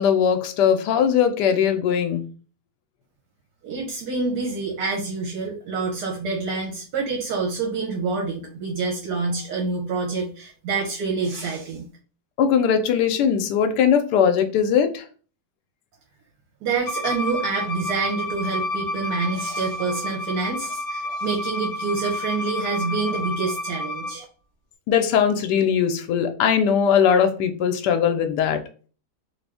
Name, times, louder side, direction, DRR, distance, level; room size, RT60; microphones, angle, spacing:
voice 1, 0.0-2.2 12.4-15.0 24.9-28.6, left 7 dB, 80° left, 7 dB, 1.2 m, -20 dB
voice 2, 3.6-11.9 16.6-24.2, right 4 dB, 75° right, -1 dB, 1.3 m, -27 dB
Bowed string instrument, 16.9-24.1, left 1 dB, 45° left, 0.7 m, -30 dB
2.9 x 2.5 x 3.4 m, 0.39 s
omnidirectional pair, 1.8 m